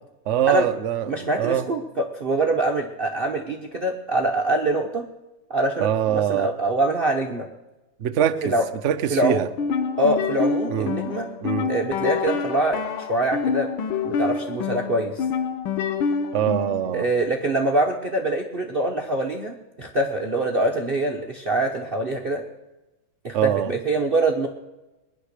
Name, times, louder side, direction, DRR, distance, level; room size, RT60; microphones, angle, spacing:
voice 1, 0.3-1.7 5.8-6.5 8.0-8.5 8.8-9.5 10.7-10.9 11.4-11.7 16.3-17.1 23.3-23.7, right 10 dB, 65° right, 0.7 m, -23 dB
voice 2, 1.1-5.1 5.5-7.5 8.4-8.6 9.1-9.4 10.0-11.3 11.7-13.7 14.0-15.2 16.9-22.4 23.2-24.5, right 2 dB, 40° right, 0.9 m, -24 dB
sound 1, 9.5-16.9, left 6 dB, 85° left, 1.8 m, -27 dB
20.5 x 10.5 x 6.6 m
omnidirectional pair, 2.3 m